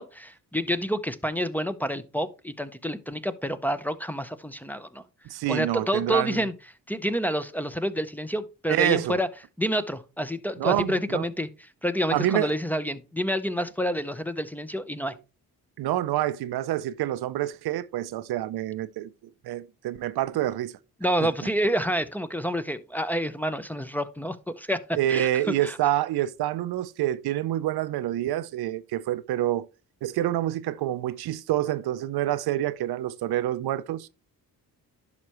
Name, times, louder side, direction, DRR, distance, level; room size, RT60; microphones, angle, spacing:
voice 1, 0.0-5.0 5.5-6.5 6.9-9.3 9.6-11.5 11.8-15.1 21.0-25.8, equal, 5° left, 0.6 m, -28 dB
voice 2, 5.3-6.4 8.7-9.2 10.6-11.3 12.1-12.6 15.8-19.1 19.4-20.7 21.2-21.3 24.9-29.7 30.0-34.1, right 13 dB, 75° right, 0.6 m, -27 dB
11.0 x 5.8 x 3.0 m
cardioid pair, 70°, 39 cm